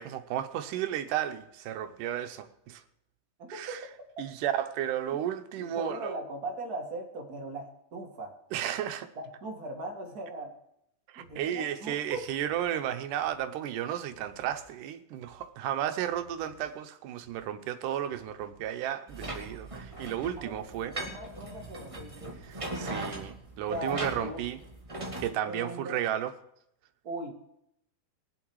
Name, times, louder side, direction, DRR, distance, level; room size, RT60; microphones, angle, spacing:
voice 1, 0.0-2.8 3.5-3.8 4.2-6.1 8.5-9.1 11.1-21.0 22.4-24.6 25.2-26.3, right 11 dB, 80° right, 2.4 m, -33 dB
voice 2, 3.4-4.1 5.6-8.3 9.2-10.5 11.2-12.3 20.4-22.4 23.7-24.4 25.4-26.0 27.0-27.3, right 2 dB, 35° right, 2.1 m, -39 dB
sound 1, 11.2-18.9, right 1 dB, 65° left, 7.5 m, -60 dB
sound 2, 19.1-25.3, right 1 dB, 15° right, 1.6 m, -39 dB
22.0 x 7.7 x 4.7 m
omnidirectional pair, 3.7 m